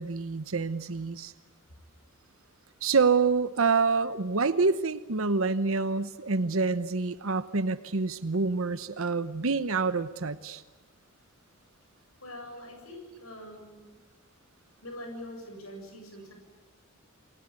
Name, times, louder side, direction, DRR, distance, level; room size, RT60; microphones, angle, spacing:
voice 1, 0.0-1.3 2.8-10.6, right 4 dB, 75° right, 12 dB, 0.9 m, -27 dB
voice 2, 12.2-13.9 14.8-16.3, left 1 dB, 80° left, 3 dB, 7.6 m, -43 dB
29.0 x 21.0 x 9.7 m, 1.2 s
head